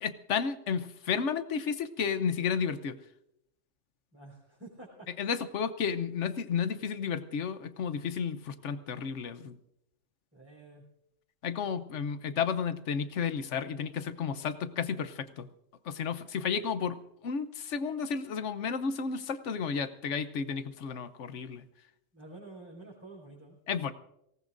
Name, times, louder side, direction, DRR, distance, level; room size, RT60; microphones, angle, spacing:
voice 1, 0.0-3.0 5.2-9.6 11.4-15.5 15.8-21.6 23.7-23.9, left 6 dB, 65° left, 12 dB, 1.1 m, -32 dB
voice 2, 4.1-5.3 10.3-10.8 22.1-23.6, right 2 dB, 10° right, -7 dB, 5.2 m, -49 dB
24.0 x 18.0 x 2.6 m, 0.80 s
omnidirectional pair, 1.3 m